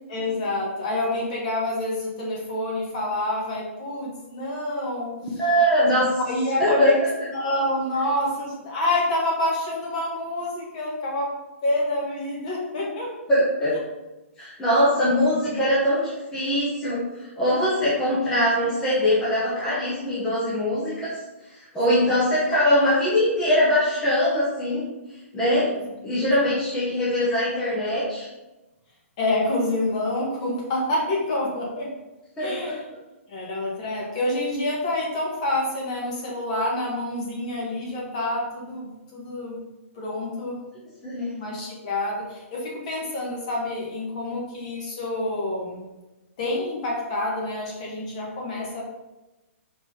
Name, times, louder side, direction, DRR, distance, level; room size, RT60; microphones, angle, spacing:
voice 1, 0.1-5.1 5.9-7.0 7.3-11.3 11.6-13.1 15.2-15.6 21.9-22.2 25.6-25.7 29.2-31.9 32.4-32.8 33.3-39.6 39.9-40.6 41.4-45.8 46.4-48.8, left 1 dB, 30° left, -3 dB, 1.6 m, -27 dB
voice 2, 5.4-6.1 6.6-6.9 13.3-13.8 14.4-17.0 17.4-21.1 21.7-24.9 25.3-25.7 26.0-28.3 32.4-32.8 41.0-41.4, equal, 5° left, -9 dB, 1.0 m, -22 dB
5.6 x 4.8 x 3.9 m, 1.1 s
hypercardioid pair, 170°, 8 cm